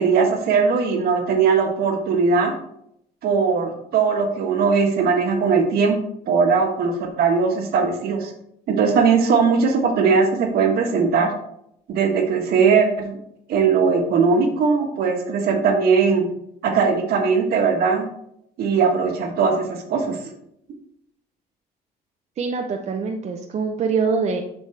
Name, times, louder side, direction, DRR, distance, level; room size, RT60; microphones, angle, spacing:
voice 1, 0.0-2.5 3.2-6.0 6.3-8.3 8.7-11.3 11.9-13.2 13.5-16.3 16.6-18.0 18.6-20.2, right 5 dB, 65° right, 3 dB, 1.4 m, -19 dB
voice 2, 22.4-24.4, right 5 dB, 40° right, 3 dB, 0.6 m, -24 dB
7.3 x 5.3 x 3.3 m, 0.75 s
cardioid pair, 110°, 17 cm